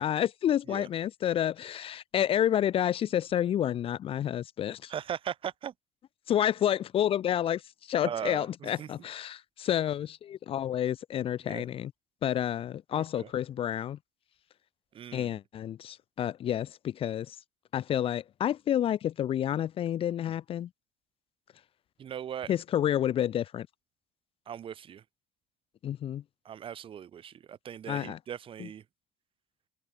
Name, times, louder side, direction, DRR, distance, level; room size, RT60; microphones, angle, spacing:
voice 1, 0.0-4.9 6.3-11.9 12.2-14.0 15.1-17.4 17.7-20.7 22.5-23.7 25.8-26.2 27.9-28.2 28.6-28.7, left 10 dB, 45° left, 1.0 m, -29 dB
voice 2, 4.9-5.7 8.0-8.9 11.5-11.7 13.0-13.3 14.9-15.3 22.0-22.5 24.5-25.0 26.4-28.8, right 9 dB, 45° right, 3.7 m, -39 dB
supercardioid pair, 90°, 13 cm